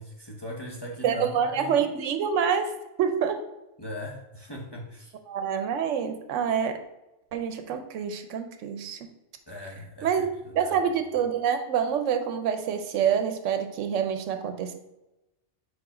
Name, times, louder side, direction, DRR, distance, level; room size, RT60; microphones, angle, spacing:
voice 1, 0.0-1.9 3.8-5.1 9.5-10.8, left 1 dB, 25° left, 0 dB, 0.8 m, -39 dB
voice 2, 1.0-2.7 3.0-3.4 5.3-6.8 7.3-9.0 10.0-10.3 10.6-14.7, right 7 dB, 85° right, 7 dB, 1.0 m, -26 dB
4.8 x 4.1 x 4.9 m, 0.95 s
omnidirectional pair, 1.2 m